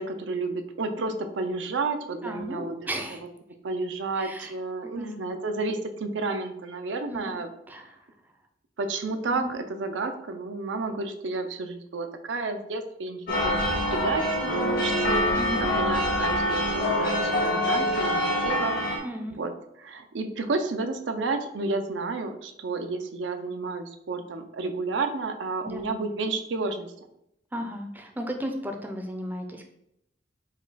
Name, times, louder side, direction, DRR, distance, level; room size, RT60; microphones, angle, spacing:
voice 1, 0.0-2.9 3.6-7.5 8.8-19.0 19.4-19.5 19.8-26.9, right 3 dB, 90° right, 7 dB, 0.5 m, -31 dB
voice 2, 2.2-3.2 4.2-4.5 4.9-5.2 7.1-7.4 7.7-8.0 9.3-9.5 15.4-15.7 19.0-19.4 25.6-25.9 27.5-29.7, equal, 10° right, 3 dB, 0.4 m, -35 dB
sound 1, 13.3-19.0, left 1 dB, 55° left, 1.0 m, -25 dB
5.0 x 2.3 x 4.0 m, 0.79 s
head